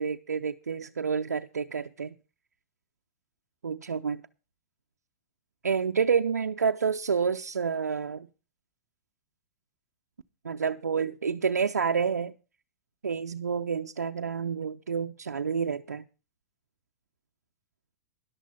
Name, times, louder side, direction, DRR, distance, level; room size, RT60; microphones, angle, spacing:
voice 1, 0.0-2.1 3.6-4.2 5.6-8.3 10.4-12.3 13.0-16.0, right 6 dB, 90° right, 0.5 m, -29 dB
13.0 x 11.5 x 4.1 m
hypercardioid pair, 105°, 9 cm